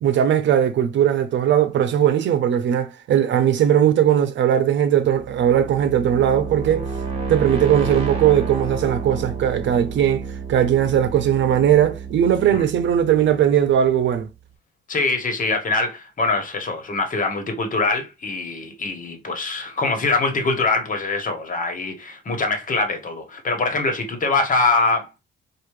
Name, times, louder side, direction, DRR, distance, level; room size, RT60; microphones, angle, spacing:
voice 1, 0.0-6.9 7.3-14.3, right 10 dB, 65° right, 0.7 m, -19 dB
sound 1, 5.1-13.9, right 5 dB, 30° right, 1.7 m, -30 dB
voice 2, 14.9-25.2, left 3 dB, 40° left, 1.4 m, -23 dB
4.7 x 2.5 x 3.2 m
cardioid pair, 90°, 20 cm